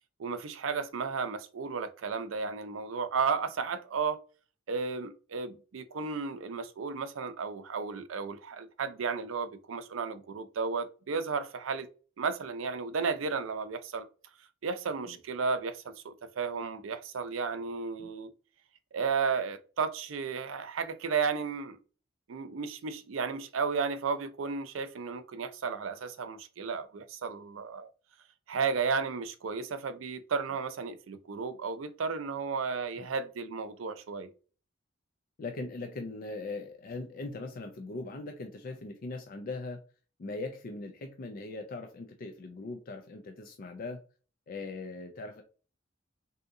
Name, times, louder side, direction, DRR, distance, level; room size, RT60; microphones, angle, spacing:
voice 1, 0.2-4.2 4.7-11.9 12.2-14.1 14.6-18.3 18.9-21.8 22.3-27.9 28.5-34.3, right 5 dB, 90° right, 0.5 m, -33 dB
voice 2, 35.4-39.8 40.2-44.0 44.5-45.4, left 3 dB, 45° left, 0.4 m, -40 dB
3.6 x 2.7 x 2.5 m
head